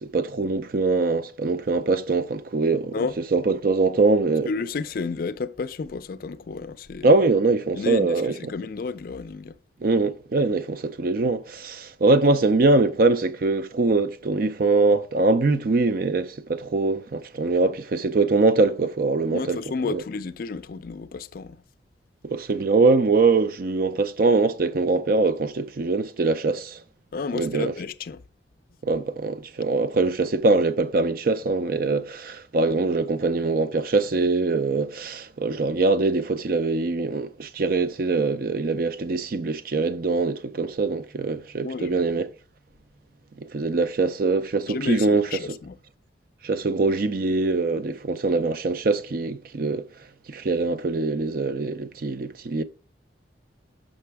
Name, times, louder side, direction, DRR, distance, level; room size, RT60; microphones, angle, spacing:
voice 1, 0.0-3.0 3.3-4.5 7.0-8.5 9.8-19.6 19.9-20.0 22.2-26.8 27.3-27.7 28.8-42.3 43.4-45.6 46.4-49.9 50.3-52.6, right 3 dB, 50° right, 0.5 m, -23 dB
voice 2, 4.5-7.1 7.7-9.6 19.3-21.6 27.1-28.2 41.6-42.0 44.7-45.8, left 4 dB, 50° left, 0.4 m, -31 dB
6.7 x 5.4 x 3.4 m
head